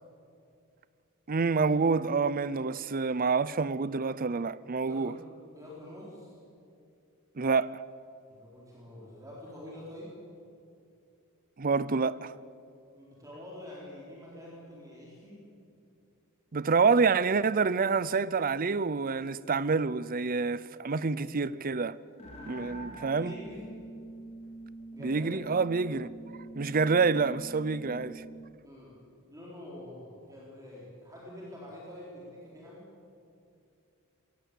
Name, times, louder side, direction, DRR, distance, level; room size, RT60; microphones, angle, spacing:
voice 1, 1.3-5.1 7.4-7.7 11.6-12.3 16.5-22.0 22.5-23.3 25.0-26.1 26.6-28.2, right 4 dB, 40° right, 0.6 m, -27 dB
voice 2, 4.8-5.2 5.5-6.4 8.3-10.2 12.9-15.4 22.3-23.7 24.9-25.3 28.6-28.9 29.2-32.8, left 1 dB, 15° right, 4.2 m, -46 dB
sound 1, 22.2-28.6, right 2 dB, 30° left, 3.9 m, -45 dB
22.0 x 17.0 x 8.4 m
head